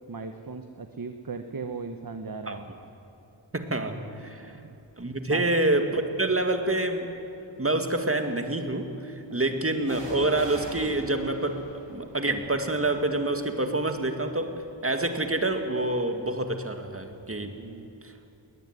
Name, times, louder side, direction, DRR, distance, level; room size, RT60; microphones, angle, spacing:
voice 1, 0.1-2.7 4.4-4.8 5.3-5.5 9.3-9.4 17.5-17.9, right 4 dB, 45° right, 7 dB, 1.1 m, -38 dB
voice 2, 3.5-4.5 5.0-7.1 7.6-14.5 14.8-17.6 18.0-18.1, right 2 dB, 30° right, 6 dB, 2.1 m, -27 dB
sound 1, 4.9-5.2 6.0-6.9 9.8-17.5 17.7-17.8, right 1 dB, 65° right, 5.9 m, -46 dB
21.0 x 19.0 x 9.6 m, 2.9 s
wide cardioid pair, 75°, 47 cm